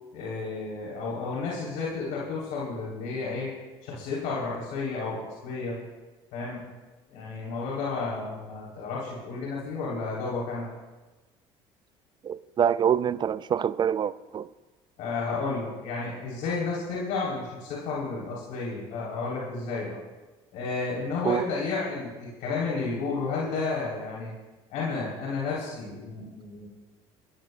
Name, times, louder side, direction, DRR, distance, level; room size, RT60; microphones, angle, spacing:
voice 1, 0.1-3.5 3.8-5.8 6.3-6.6 7.1-10.6 15.0-20.0 20.5-24.3 24.7-26.7, left 4 dB, 75° left, 3.4 m, -32 dB
voice 2, 12.3-14.5 21.3-21.4, right 8 dB, 35° right, 0.4 m, -25 dB
24.0 x 13.0 x 2.3 m
supercardioid pair, 85°, 13 cm